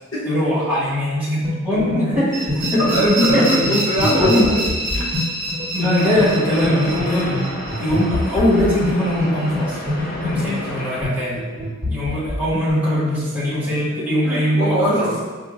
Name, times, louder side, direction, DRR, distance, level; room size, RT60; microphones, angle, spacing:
voice 1, 0.2-3.6 4.1-4.5 5.7-7.5 7.8-9.8 10.2-11.4 11.9-14.8, left 1 dB, 10° right, -11 dB, 1.5 m, -20 dB
sound 1, 1.4-12.7, left 2 dB, 30° right, 1.2 m, -27 dB
sound 2, 2.3-9.1, right 1 dB, 20° left, 1.3 m, -28 dB
voice 2, 2.8-4.7 4.9-5.1 14.2-15.2, equal, 70° left, -6 dB, 1.1 m, -21 dB
sound 3, 5.9-11.0, left 1 dB, 50° left, 0.6 m, -31 dB
5.2 x 2.6 x 2.5 m, 1.4 s
head